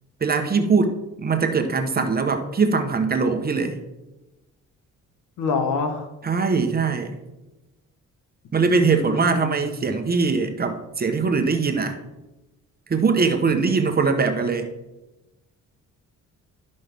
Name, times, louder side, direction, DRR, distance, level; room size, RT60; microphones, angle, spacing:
voice 1, 0.2-3.8 6.2-7.2 8.5-12.0 12.9-14.7, right 4 dB, 30° right, 6 dB, 1.0 m, -21 dB
voice 2, 5.4-6.1 8.7-9.8, left 5 dB, 85° left, 6 dB, 1.3 m, -27 dB
11.5 x 5.4 x 3.5 m, 1.0 s
cardioid pair, 90°, 30 cm